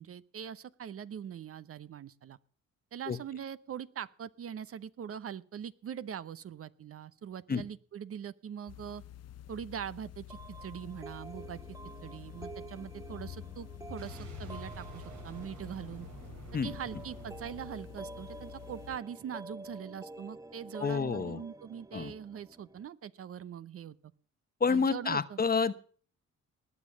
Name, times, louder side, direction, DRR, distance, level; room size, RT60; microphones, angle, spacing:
voice 1, 0.0-2.4 2.9-9.0 9.5-11.6 12.0-16.1 16.6-24.0 24.7-25.4, right 8 dB, 50° right, 17 dB, 0.8 m, -42 dB
sound 1, 8.7-19.0, left 12 dB, 55° left, 0.8 m, -48 dB
sound 2, 10.3-22.9, right 2 dB, 10° right, 0.6 m, -49 dB
Boom, 14.0-18.8, right 5 dB, 75° right, 3.8 m, -50 dB
voice 2, 20.8-21.4 21.9-22.1 24.6-25.7, left 5 dB, 30° left, 14 dB, 1.0 m, -29 dB
19.5 x 7.2 x 7.4 m, 0.44 s
cardioid pair, 90°, 30 cm